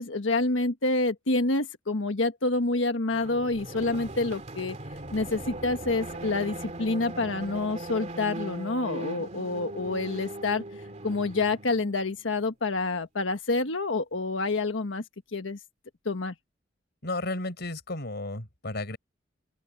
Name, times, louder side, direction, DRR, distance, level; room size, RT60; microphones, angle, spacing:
voice 1, 0.0-4.8 5.1-10.6 11.0-15.0 15.3-15.6 16.0-16.3, left 3 dB, 85° left, 1.3 m, -28 dB
sound 1, 3.1-12.3, right 1 dB, 35° right, 2.7 m, -39 dB
voice 2, 17.0-19.0, left 2 dB, 60° left, 4.9 m, -33 dB
open air
head